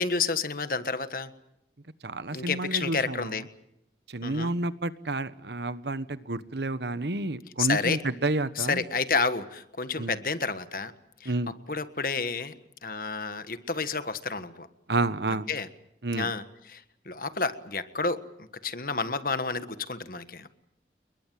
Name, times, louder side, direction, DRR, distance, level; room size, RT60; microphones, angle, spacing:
voice 1, 0.0-1.3 2.3-3.4 4.2-4.5 7.6-8.0 8.5-10.9 11.2-11.3 11.7-12.5 12.8-14.7 15.5-15.7 16.1-20.5, left 4 dB, 50° left, 11 dB, 1.5 m, -30 dB
voice 2, 2.0-3.4 4.1-8.8 10.0-10.2 11.2-11.5 14.9-15.5 16.0-16.3, right 2 dB, 70° right, 14 dB, 1.3 m, -30 dB
29.5 x 22.0 x 7.7 m, 0.79 s
head